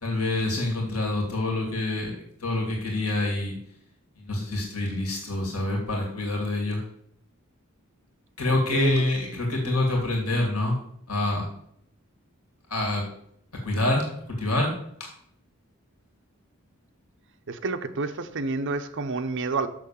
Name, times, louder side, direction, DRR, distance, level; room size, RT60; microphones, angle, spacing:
voice 1, 0.0-2.1 2.4-3.6 4.2-6.8 8.4-10.8 11.1-11.5 12.7-13.0 13.6-14.7 15.0-15.1, left 2 dB, 85° left, 1 dB, 2.3 m, -26 dB
voice 2, 8.4-9.0 9.5-9.8 17.5-19.7, right 3 dB, 60° right, 8 dB, 0.8 m, -29 dB
6.7 x 6.2 x 7.1 m, 0.70 s
head